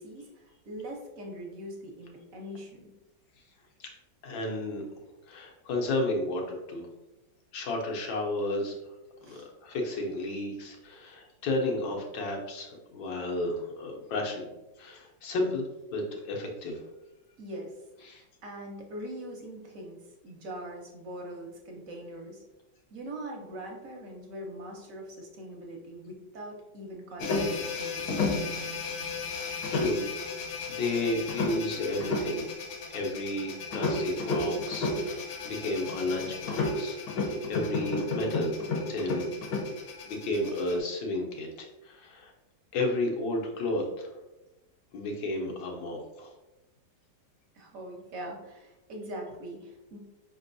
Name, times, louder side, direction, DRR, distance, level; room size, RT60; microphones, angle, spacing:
voice 1, 0.0-2.9 9.2-9.5 17.4-22.4 22.9-28.3 47.5-50.0, right 1 dB, 55° right, 0 dB, 1.1 m, -42 dB
voice 2, 4.2-4.9 5.3-6.9 7.5-8.7 9.2-14.5 14.8-15.6 15.9-16.8 18.0-18.2 29.7-30.0 30.7-32.5 32.9-39.3 40.1-42.3 42.7-44.1 44.9-46.3, left 2 dB, 90° left, 1 dB, 1.6 m, -32 dB
sound 1, 27.2-40.7, left 3 dB, 75° left, 1.4 m, -32 dB
5.2 x 3.6 x 2.6 m, 1.0 s
omnidirectional pair, 2.0 m